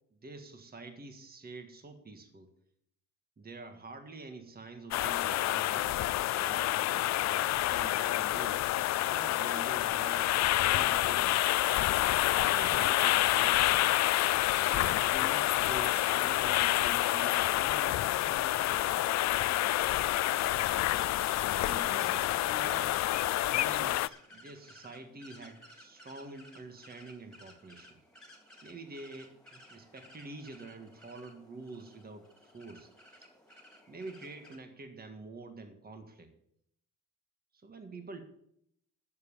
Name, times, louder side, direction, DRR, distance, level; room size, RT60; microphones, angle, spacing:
voice 1, 0.1-2.5 3.4-6.0 6.3-8.6 9.0-11.4 12.3-13.9 14.4-19.1 20.3-21.1 21.5-23.0 23.5-28.0 28.6-32.9 33.2-33.3 33.9-36.3 37.5-38.2, right 3 dB, 30° right, 6 dB, 1.7 m, -47 dB
sound 1, 4.9-24.1, left 15 dB, 65° left, 0.4 m, -28 dB
sound 2, 18.7-34.6, left 1 dB, ahead, 3.0 m, -55 dB
10.5 x 7.4 x 6.9 m, 0.74 s
cardioid pair, 90°, 30 cm